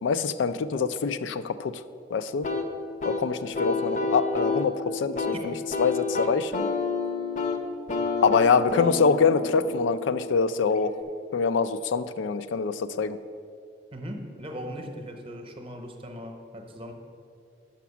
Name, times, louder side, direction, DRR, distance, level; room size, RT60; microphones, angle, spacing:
voice 1, 0.0-1.8 2.1-2.5 3.0-6.7 8.2-11.0 11.3-13.2, left 5 dB, 80° left, 13 dB, 0.4 m, -25 dB
sound 1, 2.4-11.0, left 3 dB, 40° left, 0.6 m, -30 dB
voice 2, 13.9-16.9, equal, 30° right, 4 dB, 0.8 m, -39 dB
5.9 x 5.9 x 7.1 m, 2.4 s
head